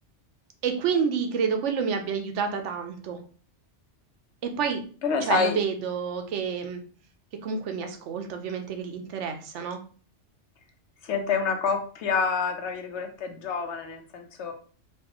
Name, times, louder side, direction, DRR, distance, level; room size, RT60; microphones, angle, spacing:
voice 1, 0.6-3.2 4.4-4.9 5.3-6.8 7.3-9.8, right 6 dB, 85° right, 5 dB, 1.0 m, -29 dB
voice 2, 5.0-5.6 11.0-14.5, left 5 dB, 75° left, 5 dB, 1.0 m, -27 dB
4.4 x 2.4 x 2.9 m, 0.41 s
omnidirectional pair, 1.2 m